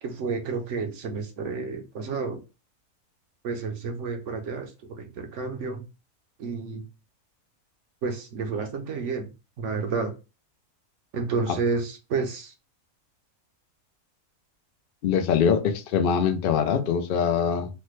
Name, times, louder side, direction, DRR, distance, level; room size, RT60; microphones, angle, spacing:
voice 1, 0.0-2.4 3.4-5.8 6.4-6.8 8.0-9.3 9.6-10.1 11.1-12.5, right 4 dB, 65° right, 0.9 m, -30 dB
voice 2, 15.0-17.7, left 7 dB, 80° left, 0.5 m, -23 dB
3.2 x 2.1 x 3.0 m
omnidirectional pair, 1.5 m